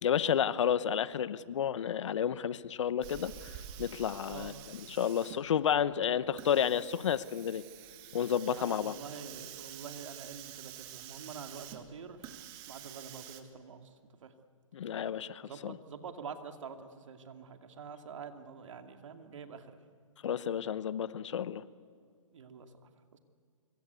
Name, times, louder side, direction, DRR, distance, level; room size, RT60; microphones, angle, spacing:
voice 1, 0.0-3.3 3.8-7.6 8.1-8.9 14.7-15.8 20.2-21.6, left 8 dB, 60° left, 16 dB, 1.0 m, -31 dB
Hiss, 3.0-13.4, right 11 dB, 25° right, 1.7 m, -48 dB
voice 2, 8.5-13.9 14.2-14.3 15.4-19.8 22.3-22.7 23.1-23.2, right 6 dB, 65° right, 6 dB, 2.5 m, -46 dB
25.5 x 23.5 x 8.3 m, 2.2 s
hypercardioid pair, 150°, 17 cm